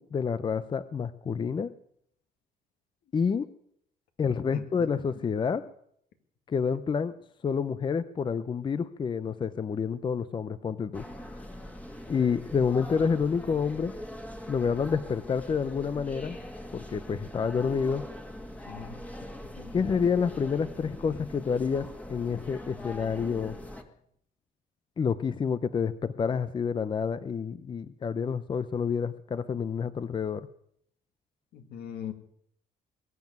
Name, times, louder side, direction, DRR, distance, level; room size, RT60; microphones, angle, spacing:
voice 1, 0.0-1.7 3.1-3.5 4.2-5.6 6.5-7.1 7.4-11.0 11.3-11.4 12.1-14.0 14.5-16.4 16.7-18.1 19.7-23.6 25.0-30.5, left 6 dB, 30° left, 14 dB, 0.6 m, -28 dB
voice 2, 4.3-4.6 18.7-19.1 19.6-19.7 31.5-32.1, left 8 dB, 70° left, 7 dB, 2.2 m, -41 dB
sound 1, 10.9-23.8, left 1 dB, 10° left, 1.8 m, -42 dB
21.5 x 7.3 x 9.3 m, 0.69 s
cardioid pair, 110°, 17 cm